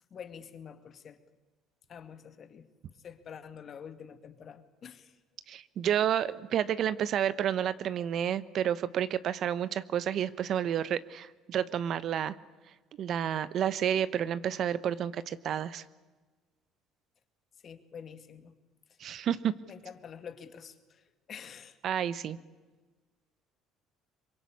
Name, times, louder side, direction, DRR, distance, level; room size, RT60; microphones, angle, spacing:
voice 1, 0.1-1.2 1.9-2.7 3.0-5.2 17.6-18.5 19.7-21.8, left 7 dB, 50° left, 9 dB, 2.3 m, -47 dB
voice 2, 5.5-12.4 13.0-15.8 19.0-19.5 21.8-22.4, right 9 dB, 55° right, 15 dB, 1.0 m, -30 dB
24.5 x 22.5 x 8.5 m, 1.3 s
hypercardioid pair, 65°, 0 cm